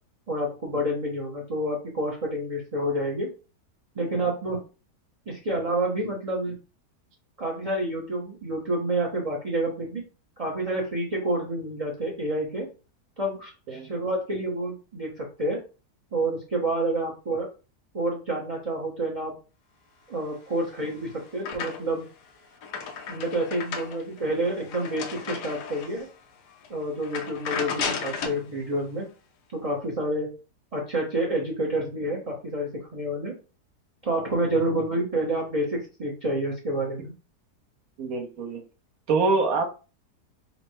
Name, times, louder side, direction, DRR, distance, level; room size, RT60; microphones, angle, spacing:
voice 1, 0.3-3.3 3.9-4.6 5.3-6.6 7.4-10.0 10.4-12.7 13.2-15.6 16.1-17.5 17.9-19.3 20.1-22.1 23.1-26.1 26.7-29.1 29.5-30.3 30.7-33.3 34.0-37.1, right 1 dB, 30° right, -1 dB, 0.7 m, -28 dB
sound 1, 20.5-22.1 22.4-26.1 26.5-26.7 27.0-28.4, left 6 dB, 80° left, 1.3 m, -34 dB
voice 2, 38.0-38.6 39.1-39.6, right 3 dB, 65° right, 4 dB, 1.2 m, -25 dB
4.1 x 2.1 x 4.5 m, 0.34 s
omnidirectional pair, 1.7 m